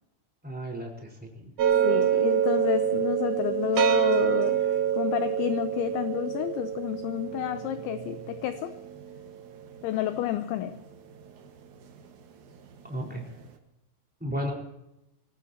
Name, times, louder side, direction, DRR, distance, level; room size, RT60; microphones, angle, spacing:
voice 1, 0.4-0.9 1.2-1.5 12.8-13.3 14.2-14.5, equal, ahead, -2 dB, 3.7 m, -33 dB
sound 1, 1.6-10.8, right 9 dB, 65° right, 2.0 m, -27 dB
voice 2, 1.8-8.7 9.8-10.8, left 13 dB, 80° left, 9 dB, 2.7 m, -30 dB
24.5 x 19.0 x 2.9 m, 0.87 s
omnidirectional pair, 6.0 m